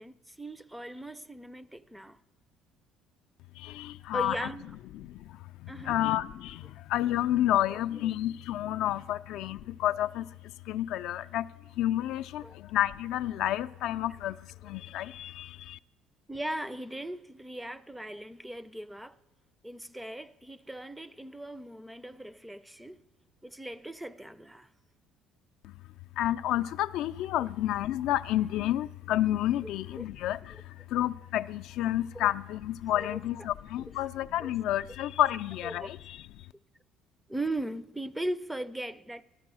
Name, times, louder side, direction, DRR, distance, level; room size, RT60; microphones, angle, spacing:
voice 1, 0.0-2.2 4.1-4.7 5.7-6.0 12.4-12.5 16.3-19.2 19.6-23.0 23.4-24.7 29.6-29.7 30.0-30.1 32.1-32.3 33.0-33.2 34.4-34.5 35.6-35.9 37.3-39.2, right 1 dB, 5° right, 0.4 m, -38 dB
voice 2, 3.5-4.5 4.9-15.8 25.6-25.7 26.1-36.5, left 13 dB, 75° left, 0.3 m, -30 dB
14.5 x 12.0 x 6.1 m
cardioid pair, 105°, 0 cm